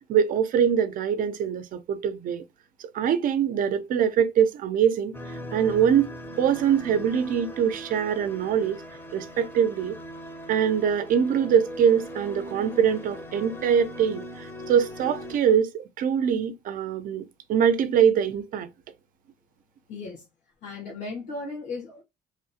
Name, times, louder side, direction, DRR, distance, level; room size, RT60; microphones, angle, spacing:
voice 1, 0.1-2.4 2.8-5.1 5.5-8.8 9.1-10.0 10.5-18.7, right 8 dB, 55° right, 0.4 m, -23 dB
sound 1, 5.1-15.4, equal, 15° left, 0.6 m, -40 dB
voice 2, 19.9-20.2 20.6-22.0, left 3 dB, 85° left, 1.5 m, -36 dB
3.0 x 2.4 x 2.7 m
cardioid pair, 110°, 17 cm